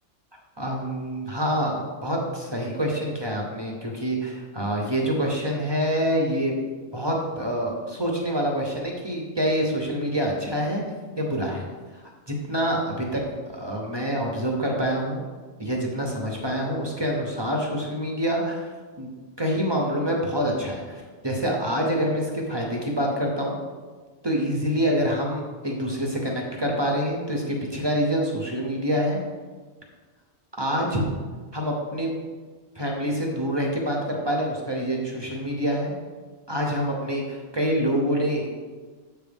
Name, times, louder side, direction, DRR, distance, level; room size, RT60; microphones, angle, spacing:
voice 1, 0.6-6.6 6.9-10.8 11.2-11.7 11.9-13.2 13.5-15.2 15.6-18.7 19.0-23.5 24.2-29.2 30.6-31.0 31.5-32.1 32.8-35.9 36.5-38.5, equal, 25° right, -1 dB, 0.6 m, -26 dB
7.5 x 3.3 x 5.2 m, 1.4 s
omnidirectional pair, 1.5 m